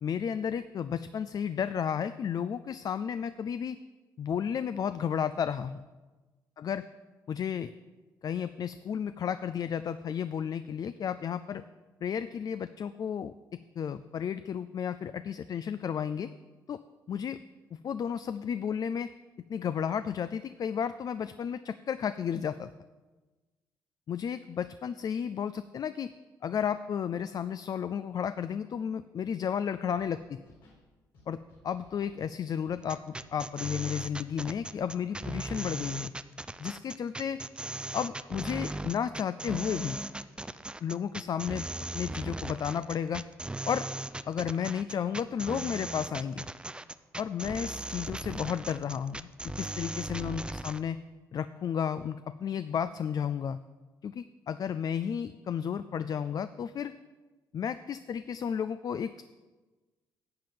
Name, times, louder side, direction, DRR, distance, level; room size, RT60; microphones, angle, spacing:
voice 1, 0.0-3.8 4.2-5.8 6.6-6.8 7.3-7.7 8.2-11.6 12.0-13.3 13.8-16.3 16.7-16.8 17.1-17.4 17.7-19.1 19.5-22.7 24.1-26.1 26.4-30.4 31.3-31.4 31.6-36.1 36.6-37.4 37.9-40.0 40.8-41.7 41.9-43.2 43.7-43.9 44.3-46.5 47.2-51.0 51.3-53.6 54.0-56.9 57.5-59.2, left 8 dB, 50° left, 13 dB, 0.4 m, -33 dB
Scratching (performance technique), 29.9-30.1 30.4-30.8 31.1-32.2 32.6-32.8 33.1-33.5 34.0-34.9, left 3 dB, 75° left, 4.1 m, -59 dB
sound 1, 32.8-50.8, right 2 dB, 10° right, 0.5 m, -38 dB
11.5 x 7.6 x 5.2 m, 1.2 s
supercardioid pair, 65°, 8 cm